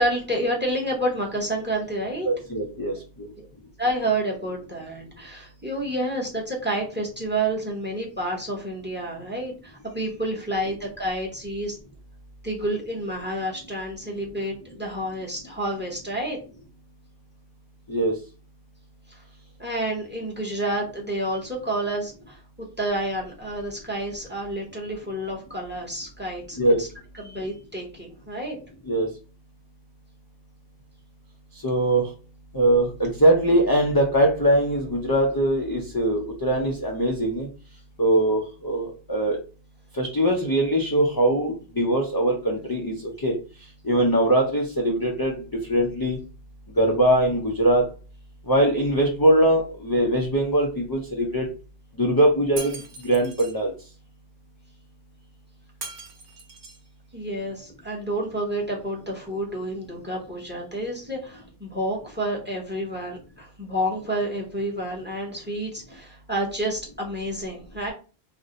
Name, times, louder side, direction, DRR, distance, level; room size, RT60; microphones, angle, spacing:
voice 1, 0.0-2.3 3.4-3.5 3.8-11.8 12.4-16.4 19.1-19.2 19.6-26.9 27.2-28.6 57.1-67.9, right 1 dB, 10° right, -1 dB, 0.7 m, -29 dB
voice 2, 2.2-3.3 17.9-18.1 26.6-26.8 28.9-29.1 31.6-32.1 32.5-37.5 38.0-39.4 39.9-42.9 43.2-43.4 43.8-45.4 45.7-46.2 46.8-47.9 48.5-51.5 52.0-52.8 53.0-53.7, right 1 dB, 35° left, -1 dB, 0.4 m, -21 dB
Shatter, 52.6-53.6 55.8-56.9, right 3 dB, 55° right, 0.9 m, -39 dB
2.5 x 2.1 x 3.8 m, 0.36 s
omnidirectional pair, 1.1 m